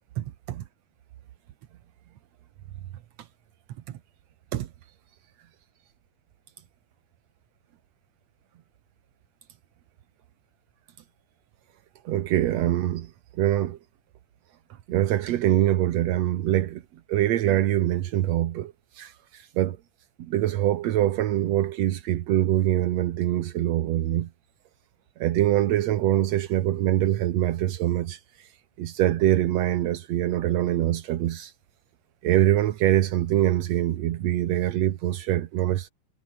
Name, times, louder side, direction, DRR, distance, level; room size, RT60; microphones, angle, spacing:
voice 1, 0.2-0.6 3.9-4.0 4.5-4.7 12.0-13.1 13.4-13.8 14.9-16.8 17.1-19.8 20.2-24.3 25.2-28.5 28.8-31.5 32.2-35.9, right 13 dB, 70° right, 1.6 m, -24 dB
omnidirectional pair, 4.4 m